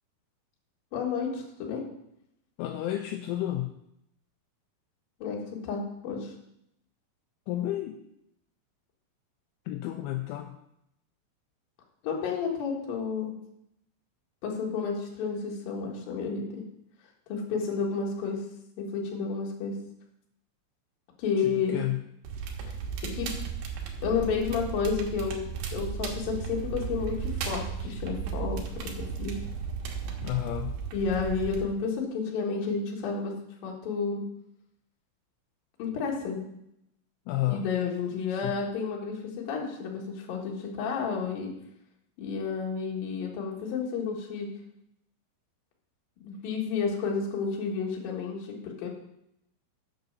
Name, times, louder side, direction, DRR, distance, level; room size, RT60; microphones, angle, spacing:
voice 1, 0.9-1.8 5.2-6.3 12.0-13.3 14.4-16.6 17.3-18.4 18.8-19.7 21.2-21.8 23.0-23.3 24.0-29.3 30.9-33.3 33.6-34.2 35.8-36.4 37.5-41.5 42.2-44.5 46.2-48.9, left 5 dB, 60° left, 0 dB, 2.8 m, -31 dB
voice 2, 2.6-3.8 7.5-8.0 9.7-10.5 21.4-22.0 30.2-30.8 37.3-37.7 38.3-38.5, left 14 dB, 85° left, 4 dB, 2.8 m, -31 dB
Crackle, 22.2-31.6, right 6 dB, 70° right, 3.1 m, -35 dB
8.3 x 6.7 x 6.7 m, 0.78 s
omnidirectional pair, 5.9 m